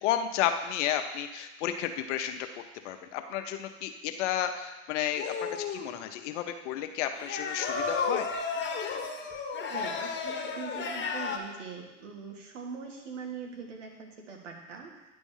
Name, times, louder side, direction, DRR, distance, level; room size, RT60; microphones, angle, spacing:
voice 1, 0.0-2.5 2.8-8.3, left 10 dB, 75° left, 7 dB, 0.9 m, -32 dB
sound 1, 5.1-5.9 7.2-11.4, left 5 dB, 30° left, 1.3 m, -33 dB
voice 2, 9.6-15.1, right 5 dB, 85° right, 2 dB, 1.7 m, -42 dB
10.0 x 3.6 x 7.2 m, 1.1 s
hypercardioid pair, 90°, 36 cm